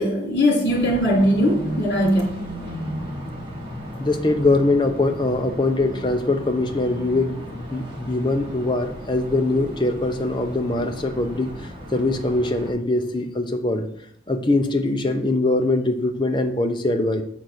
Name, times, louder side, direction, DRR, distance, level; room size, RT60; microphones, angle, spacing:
voice 1, 0.0-2.2, equal, 60° left, -2 dB, 2.3 m, -20 dB
sound 1, 0.7-12.7, equal, 25° right, 1.6 m, -35 dB
voice 2, 3.9-13.9 14.3-17.2, left 2 dB, 25° left, 5 dB, 0.7 m, -22 dB
7.8 x 3.9 x 6.4 m, 0.68 s
head